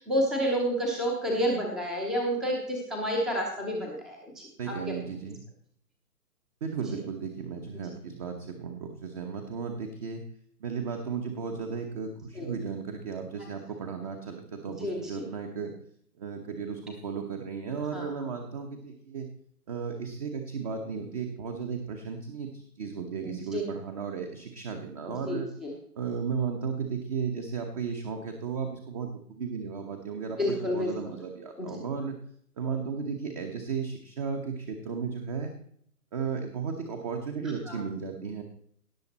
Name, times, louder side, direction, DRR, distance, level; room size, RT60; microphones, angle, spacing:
voice 1, 0.0-4.8 7.7-7.9 12.3-12.5 14.8-15.2 17.9-18.1 23.2-23.6 25.2-25.7 30.4-30.9 31.6-31.7 37.7-37.8, equal, ahead, 0 dB, 0.8 m, -30 dB
voice 2, 4.6-5.4 6.6-10.2 10.6-15.7 16.2-19.3 19.7-25.5 26.0-32.2 32.6-35.5 36.1-38.4, right 6 dB, 25° right, 5 dB, 1.0 m, -35 dB
17.0 x 7.1 x 4.2 m, 0.64 s
figure-of-eight pair, 145°, 48 cm